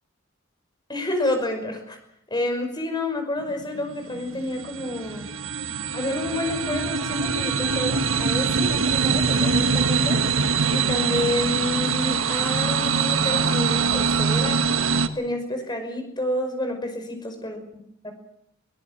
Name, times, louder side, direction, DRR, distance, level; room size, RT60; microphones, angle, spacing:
voice 1, 0.9-2.0 2.3-5.3 5.9-10.2 10.7-14.6 15.1-17.6 18.0-18.1, left 1 dB, 20° left, 5 dB, 5.6 m, -29 dB
sound 1, 3.5-15.1, right 5 dB, 85° right, 1.5 m, -23 dB
25.0 x 17.0 x 7.5 m, 0.76 s
head